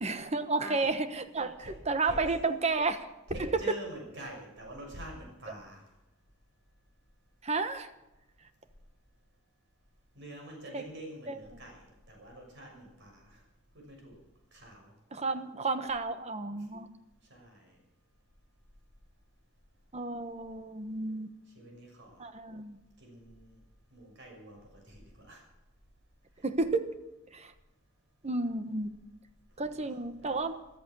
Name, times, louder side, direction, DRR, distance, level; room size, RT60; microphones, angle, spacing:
voice 1, 0.0-3.1 3.4-3.5 7.4-7.9 10.7-10.8 11.3-11.4 15.1-16.9 19.9-21.3 22.2-22.8 26.4-27.0 27.3-27.5 28.2-28.9 29.6-30.6, right 3 dB, 35° right, 10 dB, 1.1 m, -32 dB
voice 2, 0.6-0.9 1.6-1.8 2.0-2.2 3.3-5.8 10.1-13.4 13.7-14.2 14.5-14.9 17.3-17.8 21.5-22.3 23.0-23.6 23.9-25.4 29.6-30.4, right 1 dB, 60° right, 0 dB, 6.5 m, -46 dB
14.0 x 14.0 x 6.3 m, 1.0 s
head